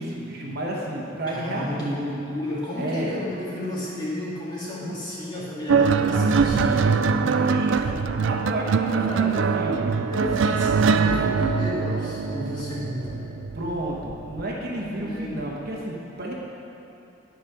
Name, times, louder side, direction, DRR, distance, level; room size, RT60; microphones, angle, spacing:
voice 1, 0.0-2.3 2.8-3.1 4.8-5.0 6.1-6.7 7.4-7.8 8.2-10.0 13.5-16.3, right 1 dB, 55° right, -3 dB, 1.2 m, -31 dB
voice 2, 1.3-7.5 8.9-9.6 10.1-13.3 14.6-15.4, left 1 dB, 25° left, -7 dB, 2.1 m, -32 dB
sound 1, 5.7-14.4 15.4-15.7, right 5 dB, 75° right, 0.4 m, -23 dB
10.5 x 5.1 x 6.0 m, 3.0 s
head